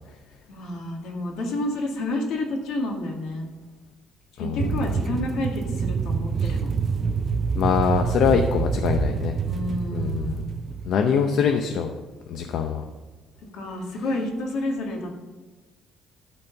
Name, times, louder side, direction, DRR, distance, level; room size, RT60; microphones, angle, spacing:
voice 1, 0.5-3.5 4.3-6.7 9.5-10.5 13.5-15.1, left 2 dB, 85° left, 0 dB, 2.1 m, -29 dB
voice 2, 4.4-4.7 6.4-6.5 7.5-9.3 9.9-10.4 10.8-11.9 12.3-12.8, left 7 dB, 70° left, 5 dB, 0.7 m, -23 dB
sound 1, 4.6-10.9, right 5 dB, 35° right, 0.5 m, -26 dB
12.5 x 4.4 x 6.8 m, 1.2 s
cardioid pair, 135°, 0 cm